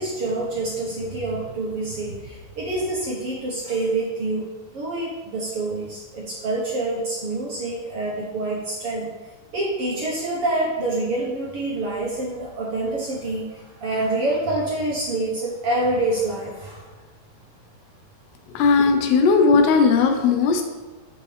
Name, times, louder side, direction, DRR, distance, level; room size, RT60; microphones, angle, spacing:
voice 1, 0.0-9.1 9.5-16.8, right 2 dB, 70° right, -4 dB, 1.3 m, -26 dB
voice 2, 18.5-20.6, left 4 dB, 90° left, 5 dB, 3.0 m, -17 dB
14.5 x 5.4 x 3.4 m, 1.3 s
omnidirectional pair, 4.6 m